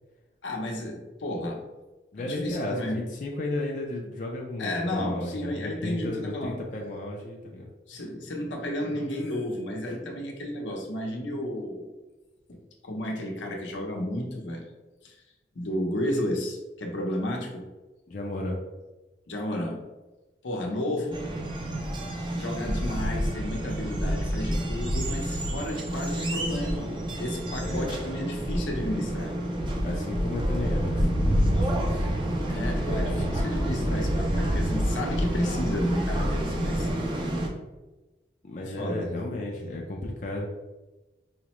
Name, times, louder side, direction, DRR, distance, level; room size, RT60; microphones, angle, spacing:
voice 1, 0.4-1.6 2.2-3.0 4.6-6.6 7.9-11.9 12.5-14.6 15.0-15.2 15.5-17.6 19.3-19.8 20.4-21.2 22.3-29.3 32.5-36.9 37.1-37.3 38.6-39.1, left 1 dB, 85° left, 1 dB, 0.7 m, -32 dB
voice 2, 2.1-7.7 18.1-18.6 27.6-28.0 29.8-32.1 38.4-40.5, left 2 dB, 45° left, -1 dB, 0.4 m, -34 dB
sound 1, 21.1-37.5, equal, 25° right, 0.4 m, -28 dB
4.8 x 2.1 x 2.9 m, 1.1 s
head